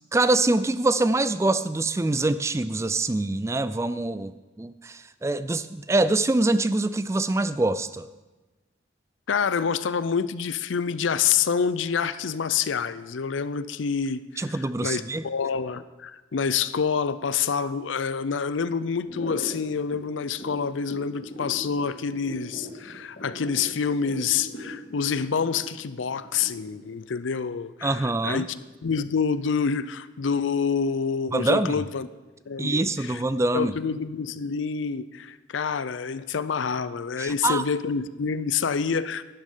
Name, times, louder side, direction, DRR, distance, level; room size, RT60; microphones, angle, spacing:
voice 1, 0.1-8.1 14.4-15.2 27.8-28.5 31.3-31.8 32.6-33.7 37.2-37.6, right 2 dB, 15° right, 14 dB, 0.3 m, -24 dB
voice 2, 9.3-32.1 32.5-33.2 33.5-39.2, left 6 dB, 90° left, 15 dB, 0.5 m, -27 dB
sound 1, 19.0-26.9, equal, 50° left, 2.8 m, -40 dB
11.5 x 10.5 x 5.6 m, 1.2 s
head